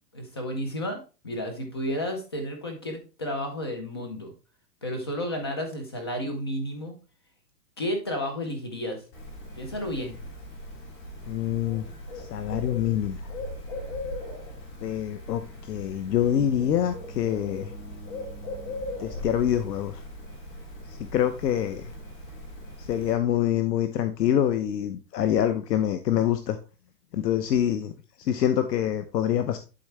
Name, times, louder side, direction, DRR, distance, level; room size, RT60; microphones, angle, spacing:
voice 1, 0.1-4.3 4.8-6.9 7.8-9.0 9.6-10.1, equal, 15° left, 5 dB, 0.5 m, -32 dB
Bird, 9.1-23.1, left 1 dB, 35° left, 2.5 m, -39 dB
voice 2, 11.3-11.9 12.1-13.2 14.8-17.7 19.0-20.0 20.9-21.9 22.8-26.6 27.1-27.9 28.2-29.6, left 10 dB, 75° left, 8 dB, 0.9 m, -26 dB
11.0 x 3.8 x 3.2 m, 0.32 s
supercardioid pair, 175°, 49 cm